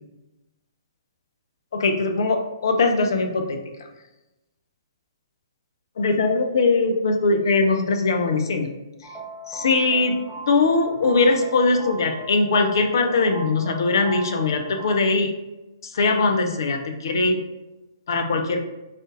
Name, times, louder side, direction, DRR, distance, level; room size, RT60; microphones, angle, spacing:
voice 1, 1.7-3.6 6.0-8.7 9.5-10.1 10.5-15.3 15.8-17.4 18.1-18.6, left 3 dB, 60° left, 4 dB, 0.5 m, -21 dB
sound 1, 9.0-14.9, right 1 dB, 5° left, 0.7 m, -37 dB
3.7 x 2.5 x 3.8 m, 1.0 s
figure-of-eight pair, 125°, 2 cm